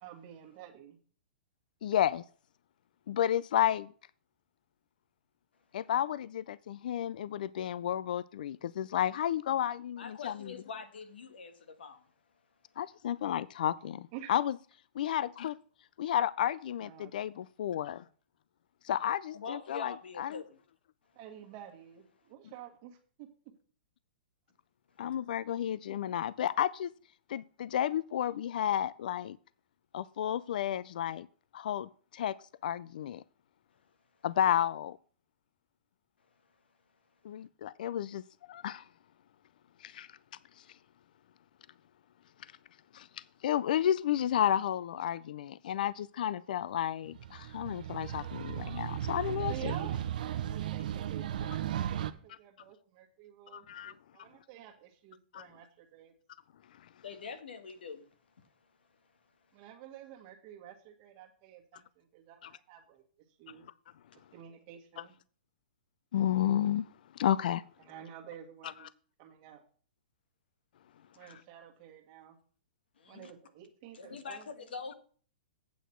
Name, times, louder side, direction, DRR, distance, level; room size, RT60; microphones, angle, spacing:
voice 1, 0.0-1.0 14.1-14.3 16.8-17.4 21.2-23.5 49.5-56.1 59.5-63.0 63.4-63.7 64.3-65.1 67.8-68.9 69.2-69.6 71.2-72.4 73.1-74.7, right 10 dB, 30° right, 1.6 m, -50 dB
voice 2, 1.8-2.2 3.1-3.9 5.7-10.3 12.8-14.5 15.0-15.6 16.0-18.0 18.8-20.4 25.0-26.9 27.3-29.4 29.9-31.3 31.5-32.3 32.6-33.2 34.2-35.0 37.2-38.2 38.5-38.8 39.8-40.1 42.9-43.1 43.4-49.7 53.5-53.9 55.3-55.5 62.4-62.5 65.0-65.1 66.1-66.9 67.2-67.6, left 10 dB, 60° left, 0.3 m, -32 dB
voice 3, 10.0-12.1 19.3-20.6 57.0-58.1 58.4-58.5 71.0-71.3 73.0-73.3 73.9-74.9, left 5 dB, 90° left, 1.6 m, -44 dB
sound 1, 47.1-52.1, right 10 dB, 55° right, 0.7 m, -36 dB
8.4 x 8.0 x 4.5 m
hypercardioid pair, 165°, 5 cm